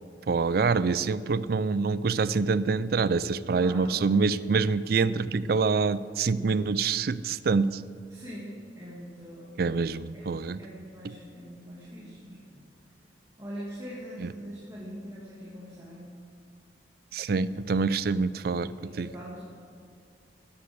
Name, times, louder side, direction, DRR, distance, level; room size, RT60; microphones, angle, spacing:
voice 1, 0.3-7.8 9.6-10.6 14.2-14.3 17.1-19.1, right 4 dB, 55° right, 16 dB, 0.4 m, -26 dB
voice 2, 3.5-4.0 8.1-9.5 10.1-12.6 13.4-16.1 18.8-19.4, equal, 20° right, -7 dB, 2.4 m, -42 dB
13.0 x 9.7 x 7.7 m, 2.5 s
head